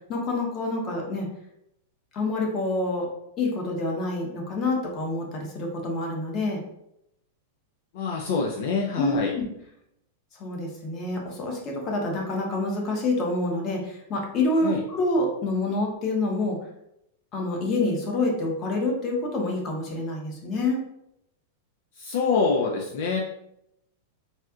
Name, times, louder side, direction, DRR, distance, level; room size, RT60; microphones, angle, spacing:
voice 1, 0.1-1.3 2.1-3.1 3.4-6.6 9.0-9.4 10.3-16.6 17.3-20.8, left 2 dB, 30° left, 0 dB, 0.9 m, -27 dB
voice 2, 7.9-9.3 14.6-14.8 22.0-23.2, left 4 dB, 65° left, 0 dB, 0.4 m, -25 dB
4.1 x 2.3 x 2.3 m, 0.79 s
supercardioid pair, 140°, 0 cm